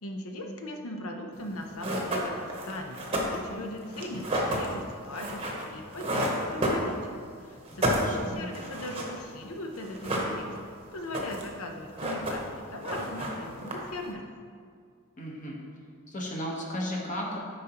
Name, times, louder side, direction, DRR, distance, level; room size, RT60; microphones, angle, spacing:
voice 1, 0.0-10.6 10.9-14.3, left 1 dB, 80° left, 3 dB, 0.8 m, -39 dB
sound 1, 1.4-1.5 1.8-7.3 7.6-9.4 9.7-10.7 11.0-11.6 11.8-12.6 12.8-14.1, equal, 25° right, 0.9 m, -31 dB
voice 2, 7.9-8.5 15.2-15.6 16.1-17.4, equal, 35° left, -2 dB, 1.1 m, -34 dB
9.3 x 5.0 x 3.0 m, 2.1 s
head